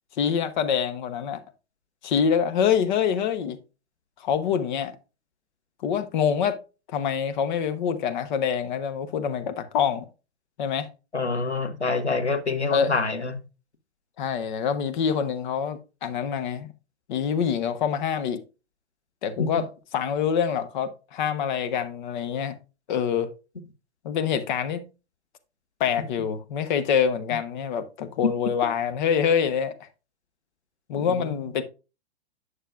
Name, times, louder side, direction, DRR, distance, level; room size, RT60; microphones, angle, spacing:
voice 1, 0.2-1.4 2.0-3.6 4.2-4.9 5.8-6.6 6.9-10.0 10.6-10.9 12.7-12.9 14.2-16.7 17.1-18.4 19.2-19.7 19.9-22.5 22.9-23.3 24.0-24.8 25.8-29.9 30.9-31.6, left 7 dB, 45° left, 1.0 m, -25 dB
voice 2, 11.1-13.4 19.4-19.5 28.2-28.3 31.0-31.3, left 4 dB, 90° left, 1.2 m, -26 dB
9.1 x 6.5 x 2.5 m
figure-of-eight pair, 105°, 33 cm